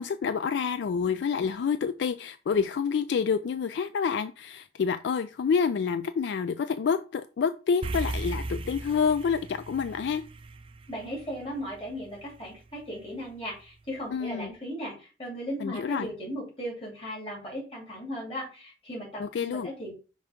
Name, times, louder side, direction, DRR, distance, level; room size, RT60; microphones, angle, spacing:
voice 1, 0.0-10.2 14.1-14.5 15.6-16.1 19.2-19.7, left 6 dB, 65° left, 0.3 m, -28 dB
sound 1, 7.8-12.3, right 2 dB, 30° right, 0.4 m, -36 dB
voice 2, 10.9-19.9, equal, 30° left, 2.6 m, -37 dB
5.7 x 3.5 x 5.0 m
head